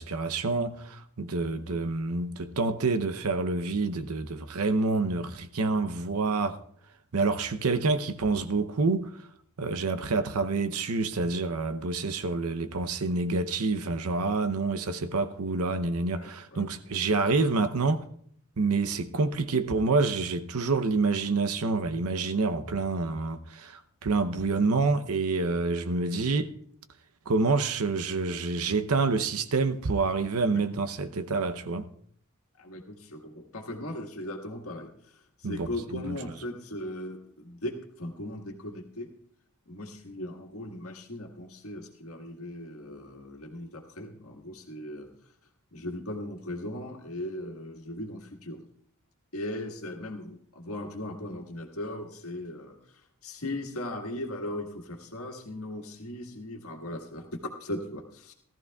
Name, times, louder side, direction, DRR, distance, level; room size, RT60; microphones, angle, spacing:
voice 1, 0.0-6.6 7.1-9.3 9.6-18.0 18.6-26.5 27.3-31.9 35.4-36.2, right 3 dB, 85° right, 0.7 m, -27 dB
voice 2, 16.1-16.7 30.5-30.6 32.6-39.1 39.7-45.1 45.7-48.6 49.3-58.3, left 1 dB, 75° left, 1.7 m, -38 dB
18.0 x 13.5 x 2.3 m
head